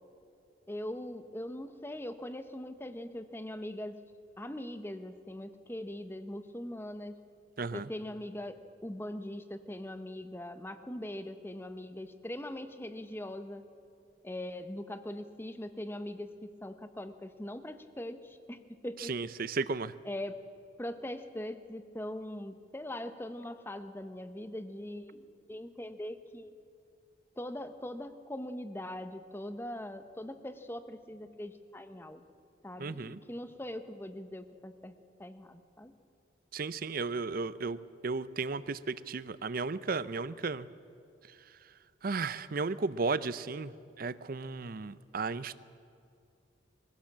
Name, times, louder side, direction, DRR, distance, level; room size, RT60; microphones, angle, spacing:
voice 1, 0.7-4.0 4.4-7.2 7.7-13.7 14.2-19.1 20.1-20.4 20.8-26.5 27.4-32.2 32.6-35.9, left 1 dB, 10° left, 10 dB, 0.8 m, -41 dB
voice 2, 7.6-7.9 19.0-19.9 32.8-33.2 36.5-37.8 38.0-40.7 42.0-43.7 44.0-45.6, right 4 dB, 50° right, 16 dB, 0.6 m, -34 dB
22.0 x 16.0 x 7.4 m, 2.5 s
head